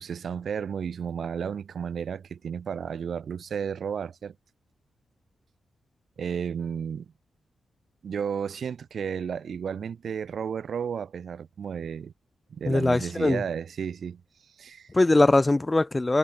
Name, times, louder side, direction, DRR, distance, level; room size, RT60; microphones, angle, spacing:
voice 1, 0.0-4.4 6.2-7.1 8.0-12.1 12.5-14.2 14.6-14.9, right 7 dB, 65° right, 7.6 m, -33 dB
voice 2, 12.7-13.4 14.9-16.2, left 2 dB, 20° left, 7.5 m, -21 dB
cardioid pair, 90°, 0 cm